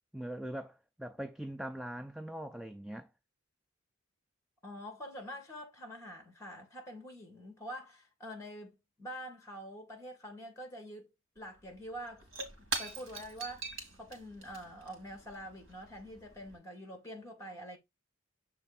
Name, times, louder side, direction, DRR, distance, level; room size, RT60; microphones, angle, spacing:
voice 1, 0.1-3.1, right 1 dB, ahead, 0.3 m, -41 dB
voice 2, 4.6-11.1 11.4-12.3 12.7-17.8, equal, 15° left, 2.1 m, -46 dB
Shatter / Crushing, 11.4-11.5 11.7-16.6, right 3 dB, 70° right, 2.1 m, -43 dB
7.0 x 3.5 x 4.1 m
head